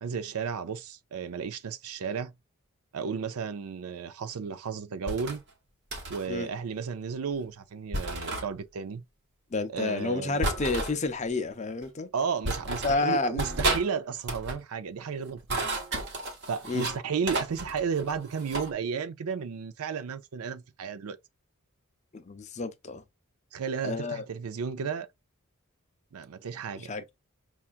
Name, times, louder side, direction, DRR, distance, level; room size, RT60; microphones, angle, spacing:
voice 1, 0.0-2.3 2.9-5.4 6.1-9.0 9.7-10.5 12.1-15.7 16.5-21.2 23.5-25.1 26.1-26.9, right 6 dB, 90° right, 0.5 m, -33 dB
sound 1, 5.1-5.4 5.9-6.3 7.9-8.5 10.4-10.9 11.8-11.9 12.4-13.0 13.4-13.9 14.2-14.6 15.3-17.0 17.3-18.7, right 2 dB, 50° right, 1.0 m, -32 dB
voice 2, 9.5-12.1 12.8-13.4 16.7-16.9 22.1-23.0 23.8-24.3 26.8-27.0, left 3 dB, 30° left, 0.5 m, -30 dB
5.5 x 2.4 x 2.4 m
head